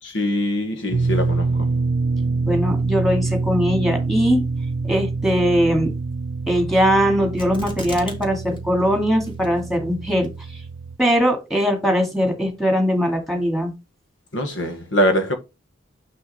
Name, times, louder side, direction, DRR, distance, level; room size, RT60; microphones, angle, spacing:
voice 1, 0.0-1.7 14.3-15.4, equal, 70° left, 1.6 m, -23 dB
sound 1, 0.9-11.0, right 3 dB, 90° right, 0.5 m, -25 dB
voice 2, 2.5-4.4 4.8-5.9 6.5-10.6 11.0-13.7, equal, ahead, 2.0 m, -20 dB
sound 2, 7.4-8.3 8.6-8.7 9.2-9.7 10.2-10.3, left 1 dB, 25° left, 1.9 m, -34 dB
6.2 x 5.6 x 4.2 m
head